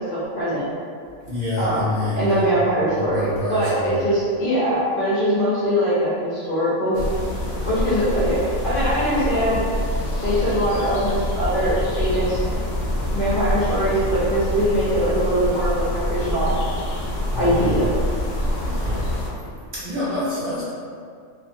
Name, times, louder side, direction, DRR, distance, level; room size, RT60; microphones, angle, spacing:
voice 1, 0.1-0.6 1.6-1.9 2.1-7.0 7.7-8.4 8.6-9.6 10.2-12.4 13.1-16.6 17.3-17.9, equal, 50° left, -10 dB, 0.8 m, -22 dB
voice 2, 1.3-2.4 3.0-4.0 17.3-17.8 18.6-19.1 19.7-20.6, left 1 dB, 50° right, -10 dB, 0.8 m, -27 dB
sound 1, 6.9-19.3, left 1 dB, 80° left, 0.9 m, -25 dB
2.4 x 2.4 x 2.6 m, 2.2 s
omnidirectional pair, 1.3 m